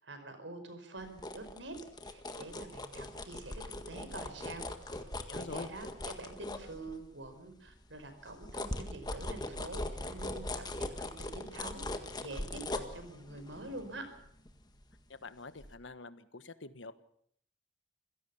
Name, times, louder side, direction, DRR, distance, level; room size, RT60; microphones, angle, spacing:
voice 1, 0.0-1.8 2.0-14.1, right 2 dB, 80° right, 8 dB, 4.9 m, -46 dB
sound 1, 1.0-7.3 7.7-15.2 15.6-15.7, left 1 dB, 20° left, 1.7 m, -41 dB
voice 2, 5.3-5.7 15.2-16.9, left 3 dB, 90° left, 13 dB, 1.4 m, -45 dB
27.0 x 16.5 x 7.0 m, 0.67 s
head